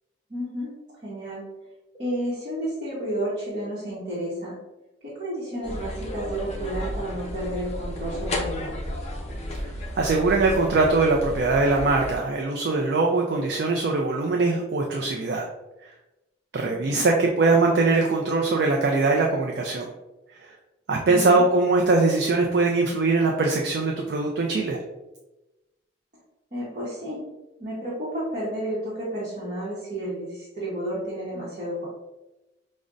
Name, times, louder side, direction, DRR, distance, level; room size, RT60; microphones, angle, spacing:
voice 1, 0.3-0.7 1.0-1.4 1.9-4.5 5.0-8.9 16.6-17.0 21.1-21.4 26.5-27.2 27.6-31.9, right 1 dB, 40° right, -9 dB, 0.9 m, -31 dB
sound 1, 5.6-12.2, left 1 dB, 35° left, 0.4 m, -33 dB
voice 2, 9.6-15.5 16.5-19.9 20.4-20.5 20.9-24.8, right 3 dB, 60° right, 1 dB, 0.3 m, -22 dB
5.0 x 2.1 x 2.4 m, 1.0 s
head